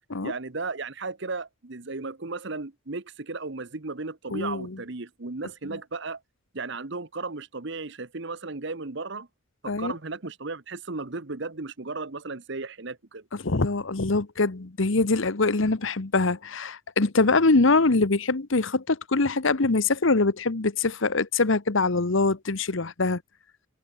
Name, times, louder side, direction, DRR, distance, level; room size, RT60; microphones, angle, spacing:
voice 1, 0.2-6.2 6.5-9.3 9.6-13.2, right 3 dB, 55° right, 1.1 m, -35 dB
voice 2, 4.3-4.8 5.7-5.8 9.7-9.9 13.3-23.2, left 3 dB, 65° left, 1.1 m, -23 dB
head